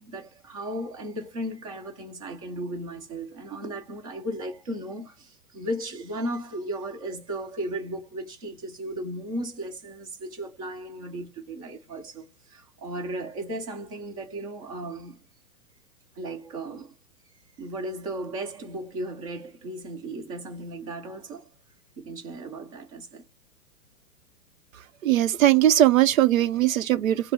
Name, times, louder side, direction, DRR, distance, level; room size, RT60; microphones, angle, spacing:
voice 1, 0.0-15.2 16.1-16.9 17.6-21.5 22.0-23.2, right 1 dB, 25° right, 0.9 m, -35 dB
voice 2, 24.7-27.3, right 12 dB, 60° right, 0.7 m, -20 dB
5.5 x 2.1 x 4.2 m
hypercardioid pair, 175°, 46 cm